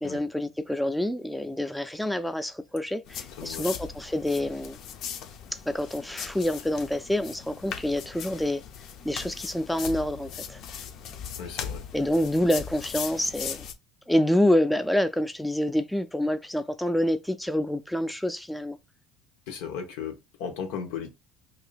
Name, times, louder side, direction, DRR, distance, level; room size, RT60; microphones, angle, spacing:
voice 1, 0.0-4.8 5.5-8.6 9.0-10.6 11.9-13.6 14.1-18.8, left 1 dB, 5° left, 0.3 m, -27 dB
sound 1, 3.1-13.7, left 8 dB, 60° left, 0.6 m, -39 dB
voice 2, 11.4-11.8 19.5-21.1, left 7 dB, 80° left, 1.0 m, -36 dB
4.8 x 2.7 x 2.3 m
supercardioid pair, 95°, 0 cm